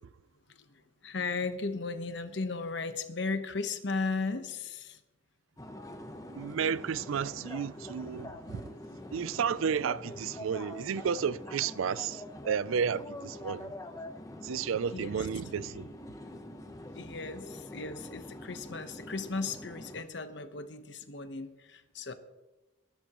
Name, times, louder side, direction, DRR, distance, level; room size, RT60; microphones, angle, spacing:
voice 1, 0.5-5.0 14.9-15.3 16.9-22.1, left 4 dB, 60° left, 1.0 m, -36 dB
sound 1, 5.6-20.0, left 1 dB, 15° left, 0.8 m, -45 dB
voice 2, 6.3-8.8 9.1-13.7 14.4-15.9, right 7 dB, 90° right, 0.4 m, -32 dB
20.5 x 11.5 x 3.0 m
head